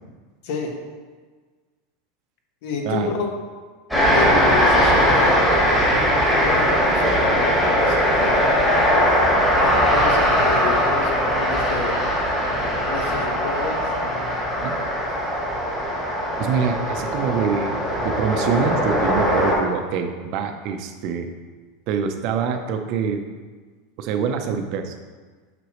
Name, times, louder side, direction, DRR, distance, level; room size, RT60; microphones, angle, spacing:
voice 1, 2.6-3.3 4.1-5.6 6.4-8.5 9.6-12.0 12.8-14.3, left 5 dB, 60° left, 1 dB, 1.4 m, -30 dB
sound 1, 3.9-19.5, equal, 5° left, 1.7 m, -20 dB
voice 2, 16.4-17.7 18.0-21.3 21.9-23.2 24.0-25.0, right 6 dB, 45° right, 6 dB, 0.6 m, -25 dB
8.0 x 6.0 x 3.1 m, 1.4 s
supercardioid pair, 165°, 0 cm